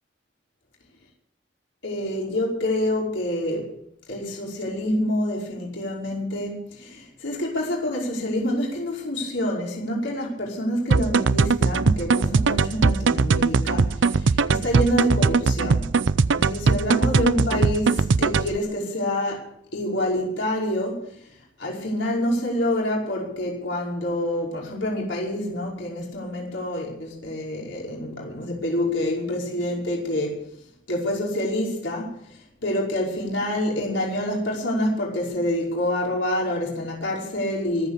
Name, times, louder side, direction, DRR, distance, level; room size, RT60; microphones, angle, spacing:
voice 1, 1.8-3.7 4.1-15.8 16.4-21.2 21.6-30.4 30.9-37.9, left 1 dB, 75° left, 5.3 m, -27 dB
sound 1, 10.9-18.6, right 4 dB, 75° right, 0.6 m, -20 dB
24.0 x 8.2 x 6.9 m
head